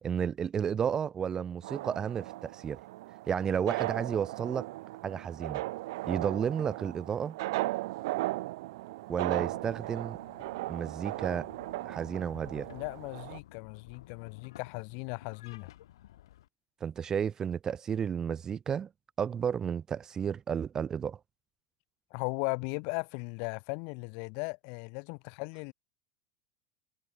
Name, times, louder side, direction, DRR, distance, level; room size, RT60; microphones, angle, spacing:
voice 1, 0.0-2.8 3.3-4.7 5.0-5.6 6.0-7.4 9.1-10.2 10.7-11.5 11.8-12.7 16.8-18.9 19.2-21.2, right 7 dB, 25° right, 0.6 m, -32 dB
sound 1, 1.6-13.4, right 19 dB, 70° right, 0.3 m, -37 dB
sound 2, 9.4-16.5, left 13 dB, 85° left, 5.3 m, -54 dB
voice 2, 12.7-15.7 22.1-25.7, left 40 dB or more, 60° left, 4.0 m, -37 dB
supercardioid pair, 125°, 2 cm